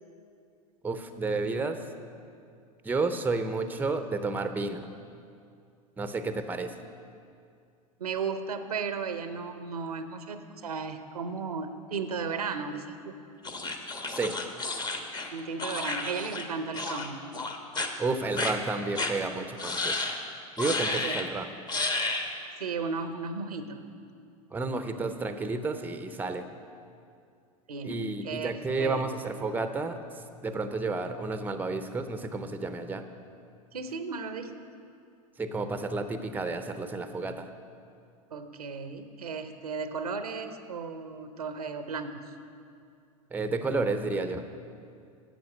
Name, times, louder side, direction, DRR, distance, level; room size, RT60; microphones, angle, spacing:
voice 1, 0.8-1.8 2.8-4.9 6.0-6.8 14.1-14.4 18.0-20.0 20.6-21.5 24.5-26.5 27.8-33.0 35.4-37.5 43.3-44.4, right 3 dB, 10° right, 9 dB, 0.7 m, -31 dB
voice 2, 8.0-13.2 15.3-17.3 20.9-21.2 22.6-23.8 27.7-29.0 33.7-34.5 38.3-42.3, right 5 dB, 85° right, 9 dB, 0.8 m, -35 dB
sound 1, 13.4-16.5 16.7-17.1 17.3-17.9 18.4-18.5 19.0-19.1 19.6-20.2 20.6-21.3 21.7-22.3, left 3 dB, 20° left, 1.1 m, -31 dB
11.0 x 8.1 x 6.6 m, 2.4 s
hypercardioid pair, 85°, 19 cm